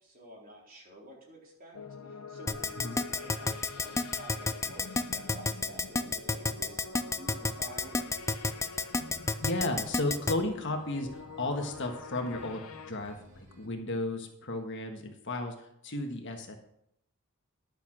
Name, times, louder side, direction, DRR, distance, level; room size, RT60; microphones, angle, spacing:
voice 1, 0.0-1.8 2.3-8.0, right 1 dB, 40° right, -3 dB, 3.8 m, -50 dB
sound 1, 1.7-12.9, left 4 dB, 85° left, 0.8 m, -46 dB
Keyboard (musical), 2.5-10.3, left 3 dB, 15° left, 0.5 m, -29 dB
sound 2, 7.5-13.7, equal, 70° right, 4.0 m, -57 dB
voice 2, 9.4-15.5 15.8-16.6, left 2 dB, 55° left, 4 dB, 1.5 m, -34 dB
11.0 x 6.8 x 6.1 m, 0.75 s
head